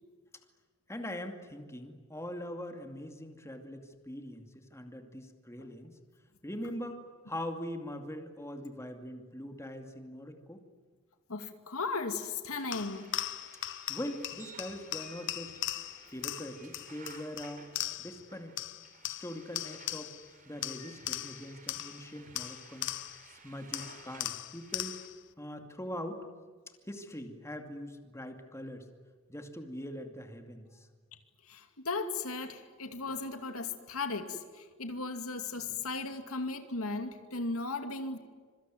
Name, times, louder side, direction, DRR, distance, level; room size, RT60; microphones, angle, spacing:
voice 1, 0.9-6.0 6.4-10.7 13.9-15.6 16.1-17.7 18.0-18.6 19.0-20.2 20.5-22.9 23.2-25.0 25.4-26.3 26.9-28.9 29.3-30.9, left 1 dB, 15° left, 5 dB, 2.5 m, -42 dB
voice 2, 11.3-13.2 31.5-38.2, left 3 dB, 90° left, 7 dB, 2.6 m, -36 dB
sound 1, 12.5-25.1, right 5 dB, 40° right, 3.9 m, -56 dB
sound 2, 12.7-18.3 18.6-20.3 20.6-23.3 23.7-25.2, left 14 dB, 60° left, 0.8 m, -39 dB
26.0 x 24.0 x 9.3 m, 1.5 s
head